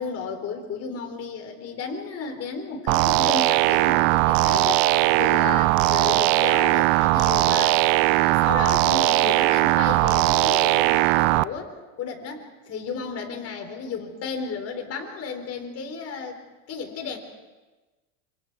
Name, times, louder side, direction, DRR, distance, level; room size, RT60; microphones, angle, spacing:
voice 1, 0.0-7.8 8.2-16.4 16.7-17.2, left 5 dB, 35° left, 4 dB, 3.9 m, -33 dB
sound 1, 2.9-11.4, right 20 dB, 55° right, 0.6 m, -19 dB
28.0 x 25.0 x 4.8 m, 1.2 s
supercardioid pair, 130°, 40 cm